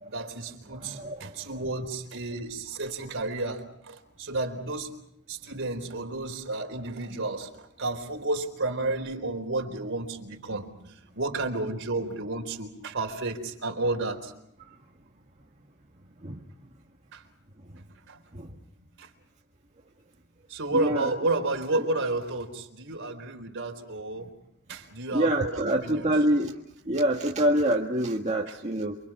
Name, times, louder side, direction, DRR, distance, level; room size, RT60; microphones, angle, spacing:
voice 1, 0.1-4.9 5.3-14.3 17.1-17.2 18.1-18.2 18.5-19.1 20.5-24.3 24.7-26.1, right 2 dB, 60° right, 3 dB, 4.1 m, -32 dB
voice 2, 0.7-1.5 10.5-10.6 16.2-16.4 18.3-18.5 20.7-21.1 25.1-26.6 26.9-29.0, right 1 dB, 30° right, -1 dB, 1.7 m, -26 dB
29.0 x 24.5 x 6.1 m, 0.80 s
head